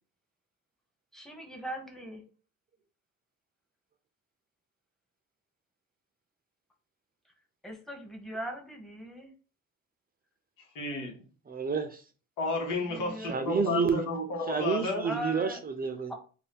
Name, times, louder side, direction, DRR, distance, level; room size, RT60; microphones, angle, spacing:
voice 1, 1.1-2.2 7.6-9.3 12.8-13.8 15.0-15.6 16.1-16.2, right 1 dB, ahead, 0.9 m, -40 dB
voice 2, 10.7-11.2 12.4-15.1, left 3 dB, 85° left, 1.0 m, -32 dB
voice 3, 11.5-12.0 13.3-14.0 14.5-16.1, right 5 dB, 30° right, 0.5 m, -29 dB
2.7 x 2.2 x 3.5 m
cardioid pair, 90°, 30 cm